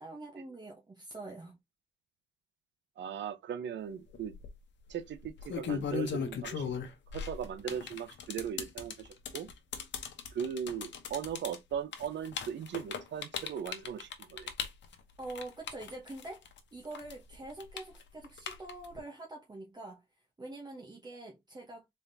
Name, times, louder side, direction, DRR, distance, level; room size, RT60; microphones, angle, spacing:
voice 1, 0.0-1.6 15.2-16.4 16.7-20.0 20.4-21.9, right 2 dB, 25° right, 0.9 m, -45 dB
voice 2, 3.0-4.3 4.9-6.7 7.1-9.5 10.3-14.5, right 8 dB, 85° right, 0.7 m, -38 dB
sound 1, 4.1-4.5 5.2-16.6 16.9-19.0, left 6 dB, 80° left, 0.9 m, -38 dB
4.2 x 3.5 x 2.7 m
wide cardioid pair, 125°, 18 cm